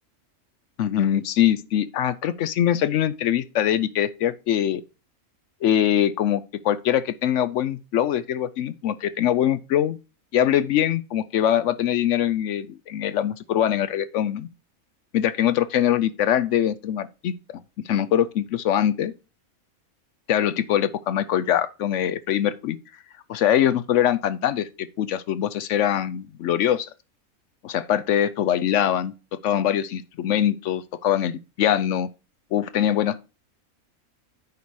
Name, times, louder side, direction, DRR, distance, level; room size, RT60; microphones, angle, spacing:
voice 1, 0.8-4.8 5.6-10.0 10.3-14.5 15.1-17.3 17.8-19.1 20.3-22.8 23.3-26.9 27.6-29.1 29.4-32.1 32.5-33.2, left 10 dB, 65° left, 0.8 m, -23 dB
9.4 x 4.2 x 4.7 m
omnidirectional pair, 1.5 m